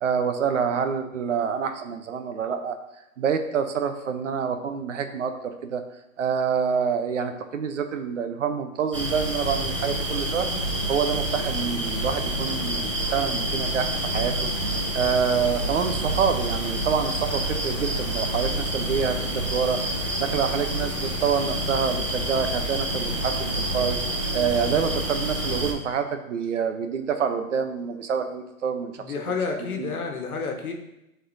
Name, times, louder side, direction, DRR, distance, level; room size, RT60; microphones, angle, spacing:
voice 1, 0.0-2.8 3.2-5.8 6.2-10.5 10.9-14.5 14.9-19.8 20.2-24.0 24.3-28.9 29.6-29.9, right 6 dB, 55° right, 7 dB, 0.8 m, -27 dB
sound 1, 8.9-25.7, right 1 dB, 25° right, 0.4 m, -28 dB
voice 2, 29.0-30.7, left 5 dB, 75° left, 2 dB, 1.4 m, -30 dB
11.5 x 4.2 x 2.7 m, 0.89 s
hypercardioid pair, 160°, 43 cm